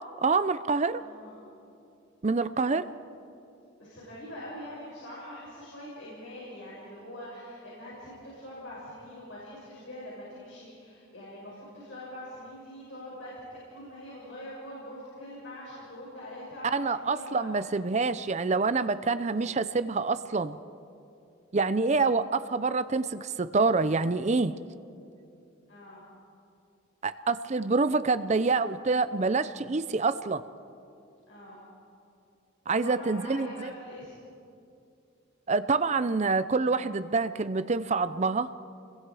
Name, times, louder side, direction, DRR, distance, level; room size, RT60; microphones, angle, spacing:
voice 1, 0.0-1.0 2.2-2.9 16.7-20.6 21.5-24.6 27.0-30.4 32.7-33.7 35.5-38.5, right 4 dB, 35° right, 13 dB, 0.5 m, -26 dB
voice 2, 1.0-1.4 3.8-13.3 13.7-17.5 25.7-26.0 31.3-31.6 32.7-34.2, left 1 dB, 75° left, -7 dB, 6.9 m, -43 dB
30.0 x 22.0 x 4.9 m, 2.6 s
head